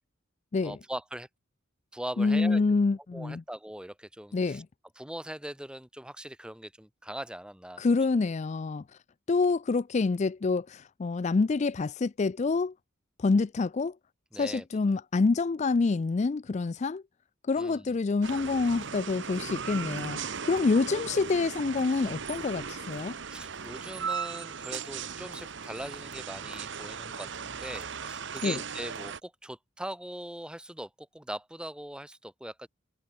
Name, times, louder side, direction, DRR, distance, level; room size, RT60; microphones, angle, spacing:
voice 1, 0.6-1.3 1.9-2.6 3.1-4.6 5.0-7.8 14.3-14.6 17.6-18.0 23.3-32.7, right 1 dB, 5° right, 0.9 m, -41 dB
voice 2, 2.2-3.4 4.3-4.7 7.8-9.0 9.3-12.7 13.2-14.0 14.3-17.0 17.5-23.2 28.4-28.6, left 4 dB, 35° left, 0.4 m, -27 dB
sound 1, 18.2-29.2, right 6 dB, 60° right, 1.1 m, -37 dB
head